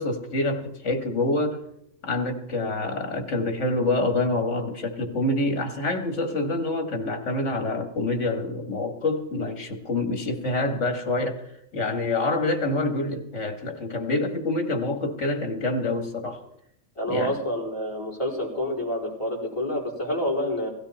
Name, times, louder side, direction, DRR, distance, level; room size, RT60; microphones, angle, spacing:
voice 1, 0.0-1.6 2.0-11.4 11.7-16.4 17.1-17.4, left 2 dB, 70° left, 2.3 m, -26 dB
voice 2, 16.9-20.7, equal, 25° left, 4.6 m, -28 dB
17.5 x 16.0 x 4.3 m
omnidirectional pair, 1.3 m